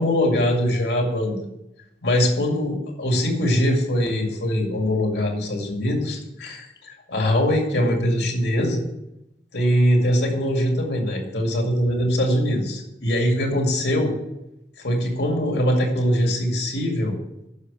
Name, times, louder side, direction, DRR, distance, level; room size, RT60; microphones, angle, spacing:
voice 1, 0.0-1.5 2.0-8.8 9.5-14.1 14.8-17.2, equal, 85° left, 2 dB, 2.3 m, -22 dB
9.7 x 6.5 x 7.4 m, 0.89 s
head